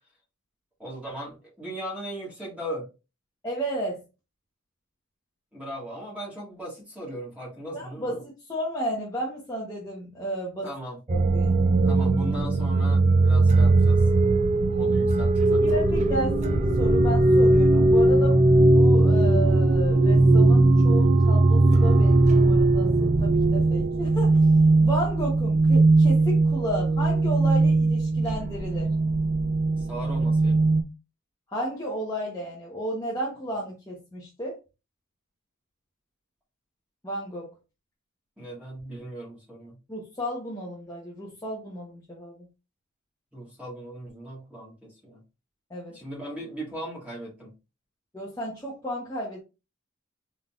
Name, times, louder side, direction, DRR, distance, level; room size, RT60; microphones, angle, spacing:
voice 1, 0.8-2.9 5.5-8.2 10.6-11.0 11.8-14.0 14.7-15.8 29.8-30.7 38.4-39.7 43.3-45.2 45.9-47.5, right 1 dB, 5° right, 1.8 m, -38 dB
voice 2, 3.4-4.0 7.7-10.7 11.1-11.5 15.6-24.4 24.8-28.9 31.5-34.6 37.0-37.5 39.9-42.3 45.7-45.9 48.1-49.4, right 1 dB, 15° left, 0.9 m, -33 dB
sound 1, 11.1-30.8, right 2 dB, 30° right, 0.3 m, -19 dB
3.9 x 3.8 x 2.4 m
head